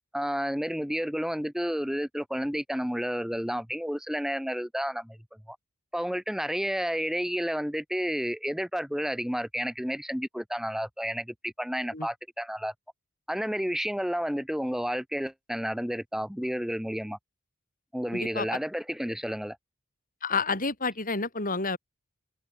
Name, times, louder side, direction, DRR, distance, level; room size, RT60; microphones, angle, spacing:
voice 1, 0.1-5.2 5.5-5.6 5.9-12.7 13.3-17.2 17.9-19.6, equal, ahead, 3.0 m, -31 dB
voice 2, 18.1-18.6 20.2-21.8, left 4 dB, 40° left, 6.9 m, -30 dB
head